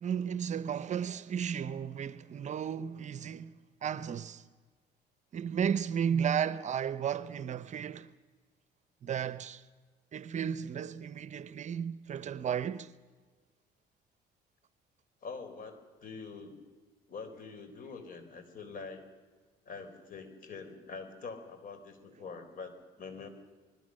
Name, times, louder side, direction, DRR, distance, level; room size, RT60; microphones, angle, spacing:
voice 1, 0.0-4.4 5.3-8.1 9.0-9.6 10.1-12.9, right 8 dB, 45° right, 0.8 m, -34 dB
voice 2, 15.2-16.6 17.1-19.0 19.7-23.3, left 4 dB, 55° left, 4.2 m, -45 dB
27.0 x 21.0 x 6.5 m
cardioid pair, 110°, 17 cm